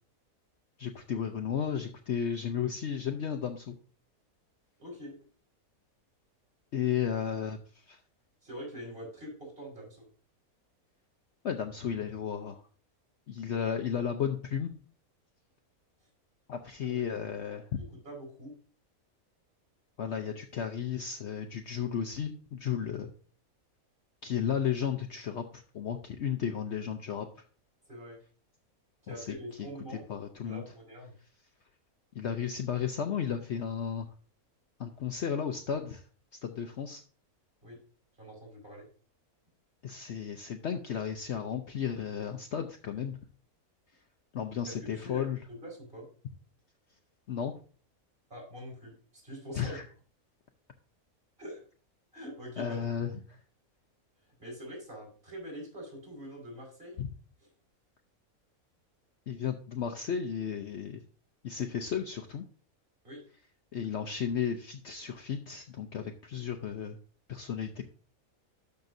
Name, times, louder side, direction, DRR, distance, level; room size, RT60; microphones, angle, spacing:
voice 1, 0.8-3.7 6.7-7.6 7.9-8.0 11.4-12.6 13.3-14.7 16.5-17.8 20.0-23.1 24.2-27.3 29.1-29.7 30.1-30.6 32.1-34.1 34.8-36.0 36.3-37.0 39.8-43.2 44.3-45.4 47.3-47.5 49.6-49.8 52.6-53.4 57.0-57.1 59.3-61.0 61.4-62.4 63.7-67.0 67.3-67.8, left 8 dB, 60° left, 5 dB, 0.9 m, -34 dB
voice 2, 4.8-5.1 8.4-10.1 16.8-17.0 18.0-18.5 27.9-28.2 29.0-30.0 30.4-31.1 37.6-37.8 38.2-38.9 44.8-45.2 45.5-46.1 48.3-49.8 51.4-51.6 52.1-52.8 54.4-57.0 63.0-63.2, equal, 40° right, 0 dB, 4.6 m, -44 dB
12.0 x 5.9 x 2.6 m, 0.40 s
omnidirectional pair, 1.5 m